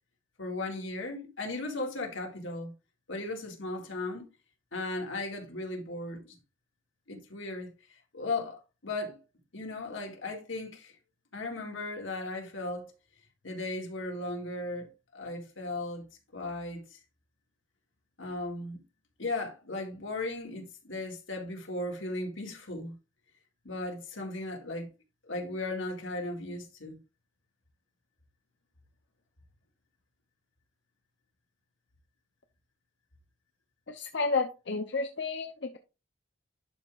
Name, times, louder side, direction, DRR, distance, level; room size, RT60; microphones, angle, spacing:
voice 1, 0.4-2.7 3.1-4.3 4.7-6.4 7.1-7.7 8.1-9.2 9.5-11.0 11.3-12.9 13.4-16.0 16.3-17.0 18.2-18.8 19.2-22.9 23.6-24.9 25.2-27.0, left 2 dB, 85° left, 2.1 m, -36 dB
voice 2, 33.9-35.8, left 4 dB, 65° left, 0.7 m, -31 dB
11.0 x 5.1 x 2.5 m
head